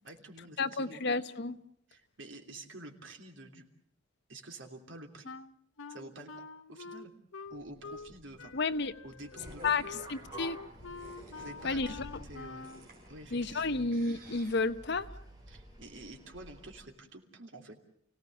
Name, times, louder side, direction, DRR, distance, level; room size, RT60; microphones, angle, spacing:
voice 1, 0.0-1.0 1.9-3.7 4.3-5.3 5.9-7.1 7.5-8.5 9.0-9.9 11.4-12.7 13.1-13.9 15.5-17.7, right 2 dB, 70° right, 3.2 m, -49 dB
voice 2, 0.6-1.6 8.5-8.9 9.6-10.6 11.6-11.9 13.3-15.1, left 3 dB, 60° left, 0.9 m, -31 dB
Wind instrument woodwind instrument, 5.2-8.1 8.4-12.9, left 4 dB, 85° left, 0.9 m, -46 dB
sound 1, 7.4-15.6, right 1 dB, 45° right, 5.5 m, -56 dB
sound 2, 9.4-16.8, equal, 20° right, 6.2 m, -51 dB
29.5 x 17.5 x 7.8 m
head